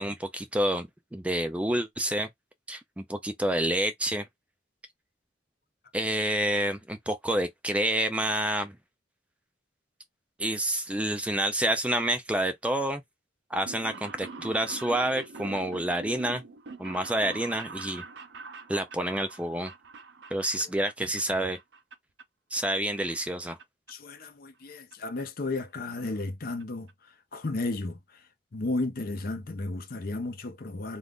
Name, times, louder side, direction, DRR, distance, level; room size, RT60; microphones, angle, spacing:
voice 1, 0.0-2.3 2.7-4.3 5.9-8.8 10.4-13.0 13.5-16.4 16.8-18.0 18.7-19.7 20.3-21.6 22.5-23.6, right 1 dB, 5° right, 0.3 m, -28 dB
sound 1, 13.5-21.3 21.5-22.2 22.6-23.6 23.9-24.0 24.9-25.0 25.2-25.3 25.6-25.7 25.9-26.2 26.6-26.7 26.9-27.0, right 4 dB, 70° right, 0.6 m, -44 dB
voice 2, 23.9-26.9 27.3-28.0 28.5-31.0, left 2 dB, 50° left, 0.6 m, -33 dB
2.5 x 2.4 x 3.4 m
head